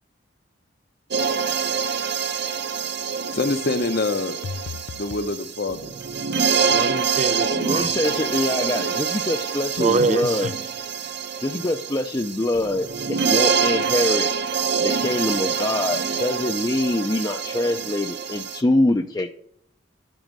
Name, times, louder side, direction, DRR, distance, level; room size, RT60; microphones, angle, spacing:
sound 1, 1.1-18.6, right 6 dB, 60° right, 0.8 m, -26 dB
voice 1, 3.3-4.4 4.9-5.9 7.5-7.8, left 3 dB, 55° left, 0.8 m, -25 dB
sound 2, 4.4-5.3 9.8-10.6, left 5 dB, 90° left, 0.4 m, -34 dB
voice 2, 6.6-7.9 9.8-10.5, right 3 dB, 40° right, 0.5 m, -24 dB
voice 3, 7.7-10.5 11.4-14.3 14.8-19.3, left 2 dB, 20° left, 0.5 m, -24 dB
9.1 x 6.2 x 7.5 m
head